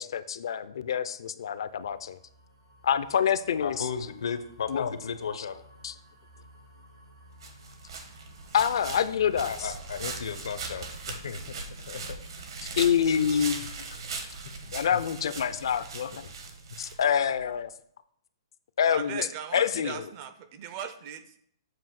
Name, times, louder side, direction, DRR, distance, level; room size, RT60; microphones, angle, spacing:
voice 1, 0.0-2.2 2.8-3.9 4.7-4.9 5.8-5.9 8.5-9.5 12.8-13.7 14.7-16.2 16.8-17.7 18.8-19.3 19.5-20.1, left 8 dB, 65° left, 14 dB, 0.4 m, -26 dB
sound 1, 1.6-11.0, equal, 90° right, 2.5 m, -54 dB
voice 2, 3.6-5.6 9.5-12.5 14.6-14.7, left 6 dB, 85° left, 10 dB, 0.8 m, -35 dB
sound 2, 7.4-17.4, right 4 dB, 65° right, 1.1 m, -40 dB
voice 3, 18.9-21.3, right 8 dB, 25° right, 11 dB, 0.4 m, -39 dB
7.5 x 2.7 x 5.9 m, 0.68 s
hypercardioid pair, 170°, 3 cm